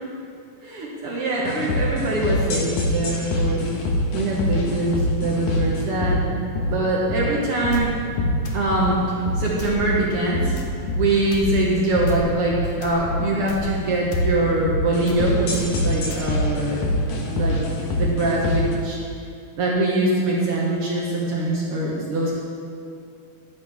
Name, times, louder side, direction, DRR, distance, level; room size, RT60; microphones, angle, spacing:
voice 1, 0.6-3.6 4.1-6.2 6.6-8.0 8.5-10.6 10.9-16.8 17.3-19.0 19.6-22.3, right 2 dB, 60° right, -4 dB, 1.6 m, -23 dB
sound 1, 1.5-18.7, left 2 dB, 60° left, 1.9 m, -25 dB
sound 2, 7.7-7.9 8.4-8.7 9.6-9.8 10.6-10.7 11.3-11.4 12.1-12.3 12.8-13.0 13.5-13.7 14.1-14.3 15.1-15.2 15.5-15.7 16.1-16.3, left 5 dB, 85° left, 1.3 m, -35 dB
11.0 x 9.7 x 3.5 m, 2.4 s
omnidirectional pair, 3.9 m